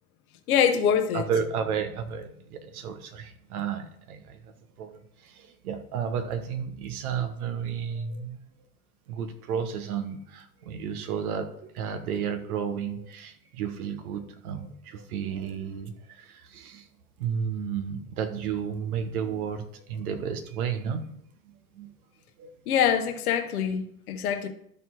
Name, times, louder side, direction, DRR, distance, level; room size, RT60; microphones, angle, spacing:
voice 1, 0.5-1.3 22.7-23.8 24.1-24.5, left 8 dB, 75° left, 1.2 m, -24 dB
voice 2, 1.1-8.4 9.1-16.9 17.2-21.1 21.4-21.9 22.4-22.5, right 7 dB, 75° right, 1.2 m, -32 dB
12.0 x 4.4 x 4.6 m
hypercardioid pair, 75°, 44 cm